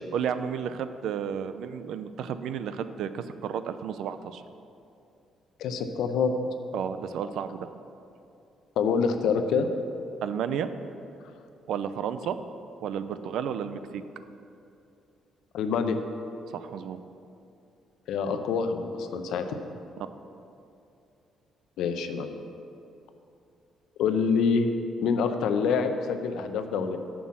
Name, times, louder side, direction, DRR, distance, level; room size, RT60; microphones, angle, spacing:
voice 1, 0.1-4.4 6.7-7.7 10.2-10.7 11.7-12.4 12.8-13.8 16.5-17.0, right 8 dB, 65° right, 11 dB, 0.4 m, -32 dB
voice 2, 5.6-6.3 8.8-9.7 15.5-16.0 18.1-19.6 21.8-22.3 24.0-24.7 25.0-27.0, left 5 dB, 75° left, 7 dB, 0.6 m, -26 dB
7.4 x 6.1 x 7.2 m, 2.6 s
cardioid pair, 165°, 0 cm